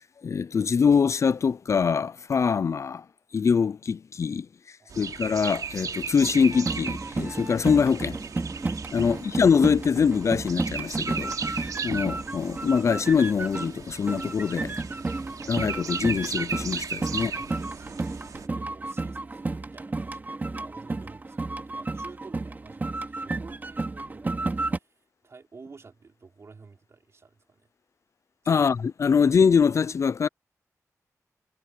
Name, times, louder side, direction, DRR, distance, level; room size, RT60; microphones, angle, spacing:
voice 1, 0.2-3.0 3.3-8.2 8.9-14.8 15.5-17.3 28.5-30.3, left 6 dB, 55° left, 0.4 m, -24 dB
sound 1, 4.9-18.5, right 6 dB, 85° right, 3.4 m, -37 dB
sound 2, 6.2-13.8 14.1-24.8, right 3 dB, 30° right, 2.5 m, -32 dB
voice 2, 17.0-27.7 28.4-28.7, right 4 dB, 50° right, 5.2 m, -51 dB
wide cardioid pair, 125°, 6 cm